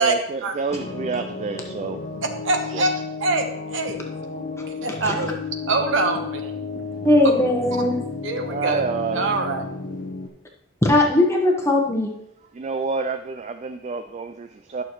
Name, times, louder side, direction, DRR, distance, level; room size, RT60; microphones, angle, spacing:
voice 1, 0.0-2.0 2.7-2.9 8.5-9.4 12.5-14.8, right 4 dB, 35° right, 0.3 m, -28 dB
sound 1, 0.7-10.3, left 4 dB, 40° left, 0.8 m, -33 dB
voice 2, 2.2-2.9 3.2-4.0 4.3-4.4 4.8-5.3 5.7-6.5 8.2-8.8 9.1-9.6, right 3 dB, 65° right, 1.0 m, -24 dB
voice 3, 7.0-7.9 10.8-12.1, left 1 dB, 15° left, 1.1 m, -18 dB
11.5 x 6.4 x 3.1 m
head